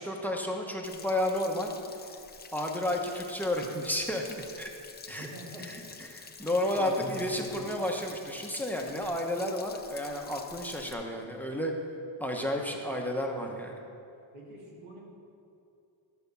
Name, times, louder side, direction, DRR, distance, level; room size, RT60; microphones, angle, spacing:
voice 1, 0.0-1.7 2.5-4.7 5.1-5.3 5.7-5.8 6.1-11.7 12.2-13.8, left 1 dB, 5° left, 1 dB, 0.9 m, -32 dB
Stream / Splash splatter / Trickle dribble, 0.8-10.9, left 5 dB, 20° left, 0.5 m, -48 dB
voice 2, 5.1-6.1 6.7-7.7 14.3-15.0, equal, 75° right, -3 dB, 2.5 m, -45 dB
12.0 x 5.2 x 6.9 m, 2.6 s
cardioid pair, 135°, 49 cm